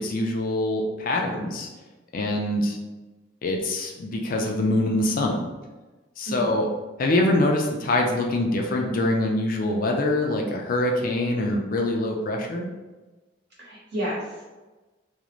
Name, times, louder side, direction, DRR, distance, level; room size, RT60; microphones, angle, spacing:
voice 1, 0.0-1.7 2.1-2.8 3.4-5.4 6.2-6.7 7.0-12.7, left 1 dB, 45° left, 1 dB, 0.4 m, -24 dB
voice 2, 13.6-14.4, equal, 60° right, -7 dB, 1.1 m, -31 dB
2.4 x 2.0 x 2.9 m, 1.2 s
head